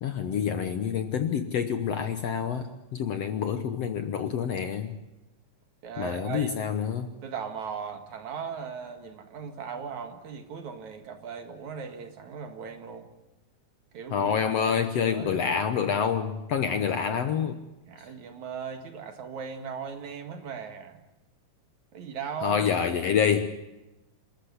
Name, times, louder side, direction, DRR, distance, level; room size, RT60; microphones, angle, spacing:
voice 1, 0.0-5.0 6.0-7.1 14.1-17.6 22.4-23.5, left 7 dB, 65° left, 9 dB, 1.7 m, -27 dB
voice 2, 5.8-6.5 7.2-13.1 13.9-14.3 14.6-14.8 15.1-15.7 17.8-21.0 21.9-22.7, right 6 dB, 60° right, 7 dB, 3.1 m, -38 dB
27.5 x 14.0 x 9.9 m, 0.98 s
omnidirectional pair, 3.9 m